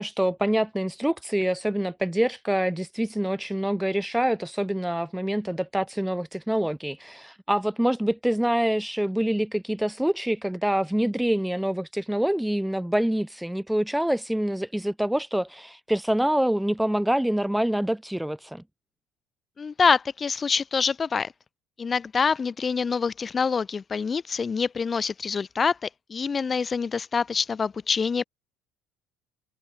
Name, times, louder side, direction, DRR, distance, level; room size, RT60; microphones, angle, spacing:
voice 1, 0.0-18.6, right 1 dB, 5° right, 1.3 m, -26 dB
voice 2, 19.6-21.3 21.8-28.2, left 5 dB, 30° left, 3.0 m, -26 dB
hypercardioid pair, 65°, 0 cm